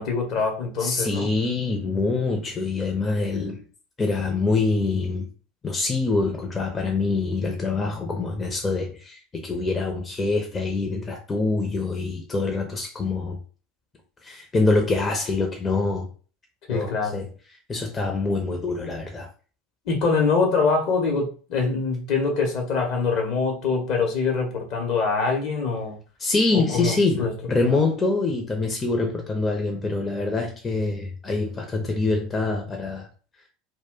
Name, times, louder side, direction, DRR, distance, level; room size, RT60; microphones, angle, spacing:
voice 1, 0.0-1.3 16.7-17.2 19.9-26.0 26.5-27.3, left 4 dB, 50° left, 0.9 m, -24 dB
voice 2, 0.8-3.6 4.0-5.3 5.6-13.4 14.2-16.1 16.7-17.3 17.7-19.3 26.2-33.1, left 3 dB, 20° left, 0.6 m, -25 dB
2.4 x 2.1 x 3.6 m
figure-of-eight pair, 75°, 0 cm